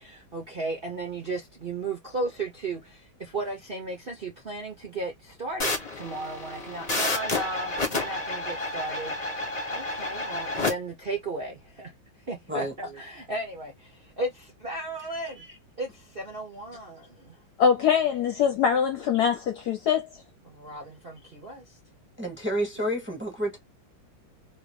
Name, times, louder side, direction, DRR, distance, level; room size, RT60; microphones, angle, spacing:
voice 1, 0.0-9.4 9.7-11.9 12.3-15.4 15.8-17.4 20.4-21.8 22.8-22.9, right 2 dB, 45° right, 0.7 m, -35 dB
sound 1, 5.6-10.7, left 2 dB, 30° left, 0.7 m, -30 dB
voice 2, 17.6-20.1, left 7 dB, 65° left, 1.0 m, -23 dB
voice 3, 22.2-23.6, equal, 10° right, 0.8 m, -29 dB
2.9 x 2.8 x 3.3 m
omnidirectional pair, 2.2 m